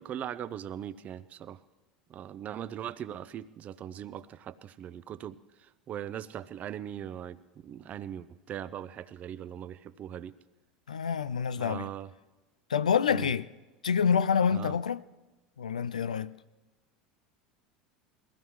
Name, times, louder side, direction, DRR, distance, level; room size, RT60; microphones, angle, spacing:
voice 1, 0.0-1.6 2.1-10.3 11.6-12.1 13.1-13.3 14.5-14.8, right 10 dB, 40° right, 0.7 m, -40 dB
voice 2, 10.9-11.9 12.7-13.5 13.8-15.0 15.6-16.3, left 7 dB, 90° left, 0.4 m, -27 dB
22.0 x 16.0 x 3.1 m
hypercardioid pair, 85°, 4 cm